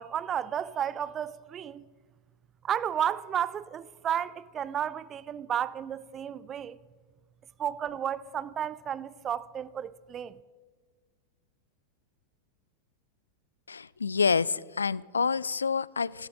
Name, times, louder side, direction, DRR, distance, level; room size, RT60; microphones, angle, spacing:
voice 1, 0.0-1.8 2.6-6.8 7.6-10.3, right 9 dB, 25° right, 0.4 m, -32 dB
voice 2, 13.7-16.3, left 5 dB, 75° left, 0.3 m, -28 dB
15.0 x 13.0 x 6.3 m
figure-of-eight pair, 90°, 0 cm